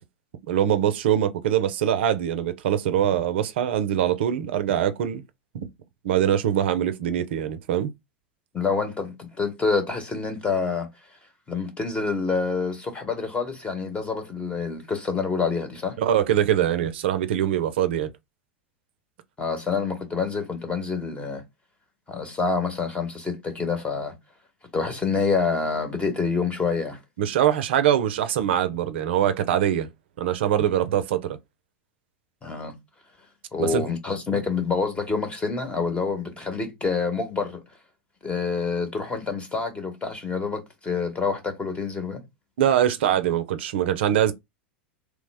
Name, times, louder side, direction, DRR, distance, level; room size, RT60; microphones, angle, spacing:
voice 1, 0.5-5.2 6.0-7.9 16.0-18.1 27.2-29.9 30.2-31.2 33.6-33.9 42.6-44.3, right 10 dB, 75° right, 0.5 m, -23 dB
voice 2, 8.5-10.9 11.5-16.0 19.4-21.4 22.1-24.1 24.7-27.0 32.4-32.8 33.5-37.6 38.2-42.2, left 4 dB, 20° left, 1.0 m, -27 dB
3.1 x 2.1 x 3.4 m
hypercardioid pair, 105°, 6 cm